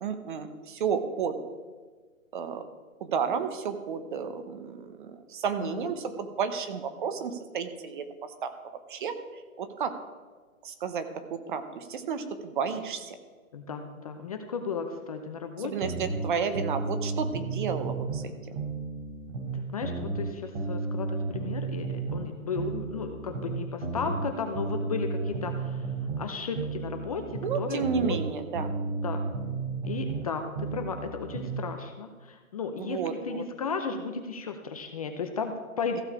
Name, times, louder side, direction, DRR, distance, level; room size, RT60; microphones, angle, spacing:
voice 1, 0.0-1.4 2.3-2.6 3.0-8.5 8.9-9.9 10.6-13.2 15.6-18.3 27.4-28.7 32.8-33.4, right 6 dB, 35° right, 9 dB, 0.9 m, -32 dB
voice 2, 13.5-15.9 19.5-25.9 26.2-28.2 29.0-29.2 29.8-33.0 33.2-36.0, left 5 dB, 25° left, 6 dB, 0.6 m, -34 dB
sound 1, 15.8-18.3 18.6-22.3 22.6-26.3 26.6-30.3 30.6-31.6, right 3 dB, 50° right, 3.3 m, -33 dB
15.0 x 6.4 x 4.8 m, 1.4 s
hypercardioid pair, 145°, 42 cm